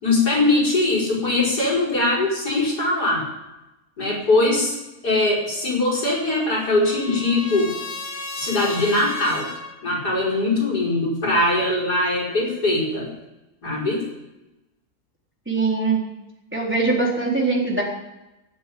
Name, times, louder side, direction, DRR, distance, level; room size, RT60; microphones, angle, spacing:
voice 1, 0.0-3.3 4.0-4.8 5.0-7.8 8.4-9.5 9.8-13.1 13.6-14.1, left 2 dB, 90° left, -3 dB, 5.7 m, -21 dB
Trumpet, 5.9-9.8, left 3 dB, 65° left, 2.2 m, -35 dB
voice 2, 15.5-16.0 16.5-17.8, right 3 dB, 5° right, -3 dB, 3.9 m, -21 dB
17.0 x 7.9 x 9.3 m, 0.97 s
omnidirectional pair, 1.7 m